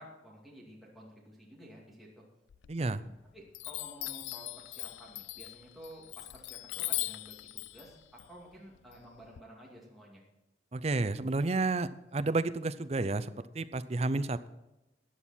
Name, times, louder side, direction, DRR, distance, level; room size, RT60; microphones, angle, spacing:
voice 1, 0.0-2.2 2.8-2.9 3.3-10.2, equal, ahead, -5 dB, 2.4 m, -52 dB
Chime, 2.5-3.2 3.5-9.4, left 19 dB, 80° left, 0.3 m, -40 dB
voice 2, 2.7-3.0 10.7-14.5, right 3 dB, 35° right, 12 dB, 0.5 m, -31 dB
14.5 x 9.8 x 4.3 m, 0.96 s
head